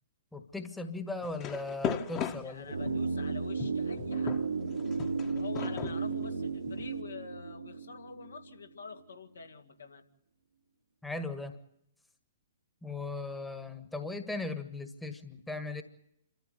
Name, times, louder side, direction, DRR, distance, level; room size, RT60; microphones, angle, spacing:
voice 1, 0.3-2.7 11.0-11.6 12.8-15.8, left 3 dB, 5° left, 8 dB, 1.7 m, -38 dB
sound 1, 1.2-3.1 3.6-6.9, left 8 dB, 25° left, 1.6 m, -37 dB
voice 2, 2.4-4.4 5.3-10.0, left 5 dB, 65° left, 5 dB, 2.2 m, -46 dB
sound 2, 2.7-8.7 9.0-9.1, right 4 dB, 70° right, 2.0 m, -34 dB
28.0 x 13.5 x 9.5 m, 0.78 s
figure-of-eight pair, 120°, 0 cm